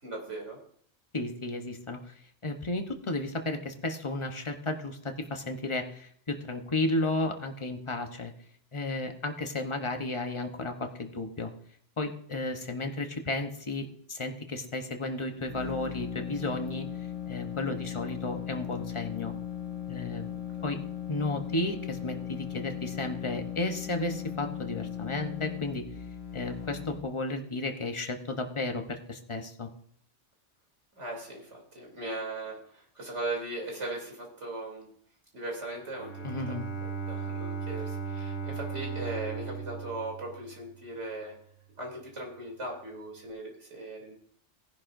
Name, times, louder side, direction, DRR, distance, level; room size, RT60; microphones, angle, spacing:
voice 1, 0.0-0.6 20.6-20.7 31.0-34.9 35.3-36.6 37.1-41.3 41.8-44.1, right 2 dB, 90° right, 0 dB, 3.6 m, -38 dB
voice 2, 1.1-2.1 2.4-8.3 8.7-11.5 12.0-16.8 17.3-19.3 19.9-20.4 20.6-20.8 21.1-25.8 26.3-29.7 36.2-36.6, left 2 dB, 25° left, 5 dB, 1.0 m, -33 dB
sound 1, 15.3-27.0, left 10 dB, 85° left, 1.9 m, -38 dB
Bowed string instrument, 35.9-40.9, right 5 dB, 70° left, 1.5 m, -37 dB
17.0 x 10.5 x 2.7 m, 0.62 s
omnidirectional pair, 1.2 m